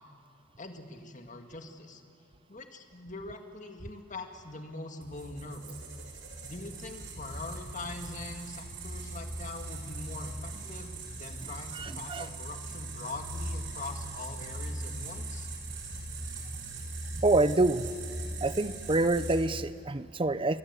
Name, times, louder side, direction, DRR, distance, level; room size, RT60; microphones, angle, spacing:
voice 1, 0.6-2.0 2.5-5.8 6.4-15.5, left 2 dB, 40° left, 5 dB, 2.0 m, -43 dB
sound 1, 5.0-19.4, right 2 dB, 85° right, 6.4 m, -40 dB
voice 2, 11.8-12.3 17.2-17.9 18.4-20.6, right 2 dB, 25° right, 14 dB, 0.7 m, -27 dB
29.0 x 23.5 x 8.3 m, 2.5 s
head